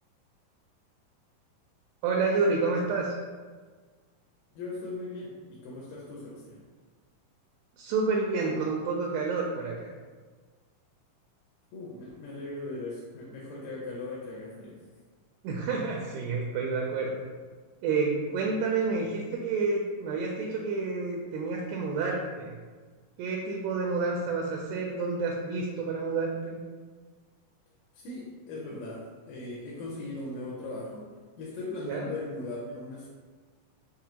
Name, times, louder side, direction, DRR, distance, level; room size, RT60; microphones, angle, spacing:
voice 1, 2.0-3.2 7.8-9.9 15.4-17.2 17.8-22.6 23.2-26.6 31.9-32.1, right 4 dB, 85° right, -1 dB, 2.1 m, -29 dB
voice 2, 4.6-6.6 11.7-14.8 27.9-31.1 31.4-33.1, left 2 dB, 90° left, -4 dB, 2.4 m, -39 dB
6.2 x 2.1 x 2.8 m, 1.5 s
omnidirectional pair, 4.0 m